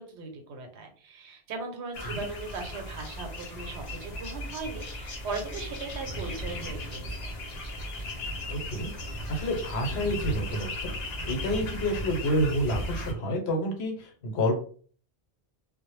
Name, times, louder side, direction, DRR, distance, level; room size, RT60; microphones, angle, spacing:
voice 1, 0.0-7.3, right 3 dB, 85° right, 4 dB, 0.9 m, -38 dB
sound 1, 1.9-13.1, left 1 dB, 50° left, 0.5 m, -36 dB
voice 2, 8.5-8.9 9.3-14.6, equal, 75° left, 3 dB, 0.9 m, -29 dB
2.0 x 2.0 x 3.0 m, 0.44 s
omnidirectional pair, 1.1 m